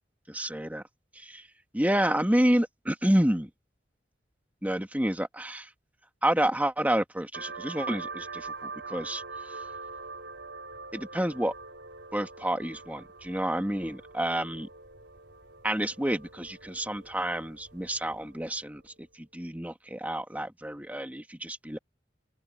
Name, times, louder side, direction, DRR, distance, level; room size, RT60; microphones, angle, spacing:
voice 1, 0.3-0.8 1.1-1.5 1.7-3.5 4.6-5.7 6.2-9.6 10.9-11.5 12.1-14.7 15.6-21.8, right 1 dB, 10° right, 2.1 m, -29 dB
sound 1, 7.3-18.6, right 4 dB, 90° right, 4.3 m, -43 dB
open air
head